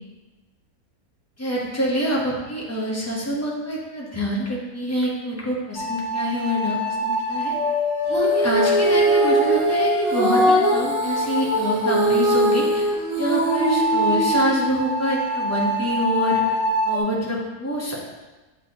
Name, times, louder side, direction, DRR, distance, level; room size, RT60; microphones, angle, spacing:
voice 1, 1.4-7.5 8.3-12.8 13.2-16.4 16.9-18.1, equal, 10° left, -4 dB, 0.9 m, -26 dB
sound 1, 5.8-11.6 13.5-17.0, left 1 dB, 65° left, 0.4 m, -25 dB
Female singing, 8.1-14.6, right 1 dB, 40° right, 1.2 m, -21 dB
8.3 x 3.8 x 3.0 m, 1.2 s
omnidirectional pair, 1.5 m